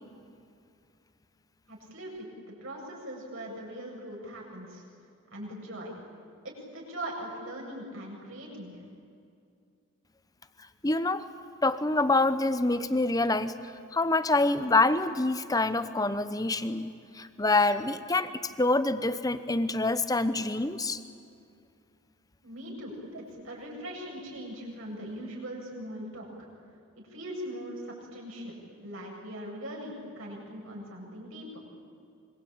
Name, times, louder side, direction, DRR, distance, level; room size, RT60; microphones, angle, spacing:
voice 1, 1.7-4.8 5.3-5.9 6.4-8.8 22.4-26.5 27.1-28.5 28.8-31.5, equal, 65° right, -2 dB, 7.7 m, -40 dB
voice 2, 10.8-11.2 11.6-21.0, left 2 dB, 15° left, 12 dB, 0.9 m, -26 dB
25.5 x 24.0 x 8.9 m, 2.4 s
head